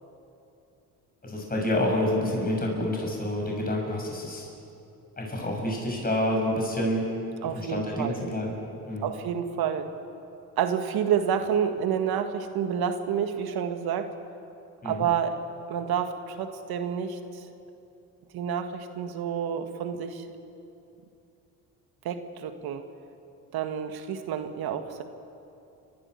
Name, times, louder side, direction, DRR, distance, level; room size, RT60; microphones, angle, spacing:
voice 1, 1.2-4.5 5.2-7.1 7.5-8.5 8.8-9.1 14.8-15.0, left 1 dB, 25° left, -1 dB, 6.8 m, -28 dB
voice 2, 7.4-8.2 9.0-9.9 10.6-14.1 14.8-15.4 15.7-17.5 18.3-20.3 22.0-22.9 23.5-25.0, right 8 dB, 70° right, 7 dB, 2.0 m, -29 dB
29.5 x 12.5 x 9.9 m, 2.8 s
supercardioid pair, 75°, 38 cm